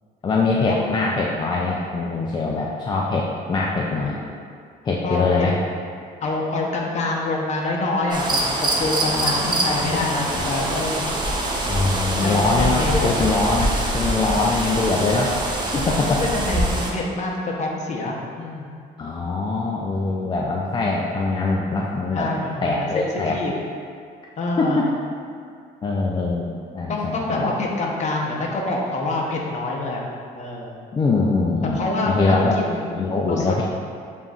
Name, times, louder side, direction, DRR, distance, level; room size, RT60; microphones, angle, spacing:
voice 1, 0.2-4.2 4.9-5.6 9.0-9.5 9.8-10.1 10.3-10.5 11.7-15.3 15.6-16.2 19.0-22.3 22.6-23.4 24.6-24.9 25.8-27.5 30.9-32.6 32.9-33.6, left 3 dB, 25° left, -3 dB, 0.3 m, -23 dB
voice 2, 5.0-5.5 6.2-11.2 12.1-13.1 14.3-14.4 15.7-18.7 22.1-23.5 24.4-24.8 26.9-30.0 30.4-30.7 31.6-33.0 33.3-33.5, left 2 dB, 45° left, -1 dB, 0.7 m, -26 dB
sound 1, 8.1-16.9, right 1 dB, 25° right, 0.6 m, -24 dB
6.9 x 2.5 x 2.3 m, 2.2 s
cardioid pair, 110°, 17 cm